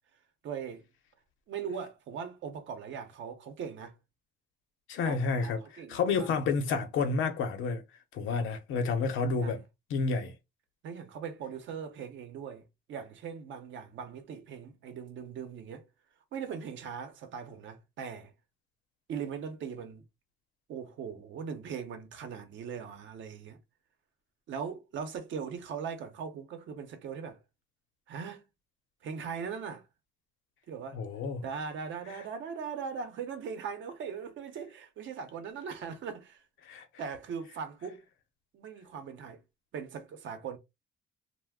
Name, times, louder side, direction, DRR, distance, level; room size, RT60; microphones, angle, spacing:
voice 1, 0.4-0.9 1.5-3.9 5.0-6.3 9.4-9.6 10.8-12.6 12.9-15.9 16.3-18.3 19.1-20.0 20.7-23.6 24.5-27.4 28.1-28.4 29.0-29.8 30.7-31.0 31.4-36.4 37.0-38.0 38.5-39.4 39.7-40.6, right 6 dB, 70° right, 0.7 m, -40 dB
voice 2, 4.9-7.8 8.1-9.6 9.9-10.3 30.9-31.4 32.1-32.2 36.6-36.8, left 4 dB, 90° left, 0.7 m, -30 dB
2.3 x 2.1 x 3.4 m
cardioid pair, 90°, 20 cm